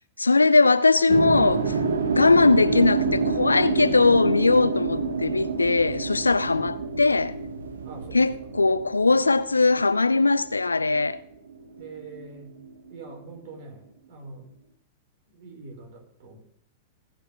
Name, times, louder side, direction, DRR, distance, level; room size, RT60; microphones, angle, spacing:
voice 1, 0.2-1.7 2.1-7.4 8.1-11.2, left 3 dB, 85° left, 0.6 m, -20 dB
sound 1, 1.1-11.2 11.5-13.1, right 4 dB, 70° right, 1.4 m, -28 dB
voice 2, 7.8-8.3 11.8-12.6 12.9-14.5 15.3-16.4, right 3 dB, 55° right, 5.2 m, -43 dB
18.5 x 6.5 x 6.7 m
figure-of-eight pair, 95°, 0 cm